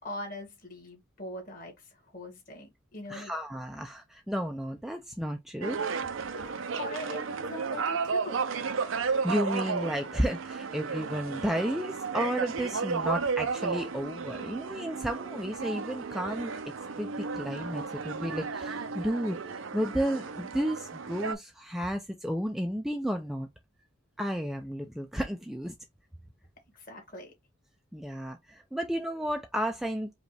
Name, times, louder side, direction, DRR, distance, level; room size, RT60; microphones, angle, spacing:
voice 1, 0.0-3.3 6.3-8.5 26.7-27.3, left 1 dB, 45° left, 1.9 m, -42 dB
voice 2, 3.1-5.8 6.7-6.8 9.2-16.5 17.0-23.5 24.2-25.7 27.9-30.1, equal, ahead, 0.3 m, -32 dB
sound 1, 5.6-21.3, right 5 dB, 90° right, 0.6 m, -33 dB
5.0 x 2.4 x 3.2 m
head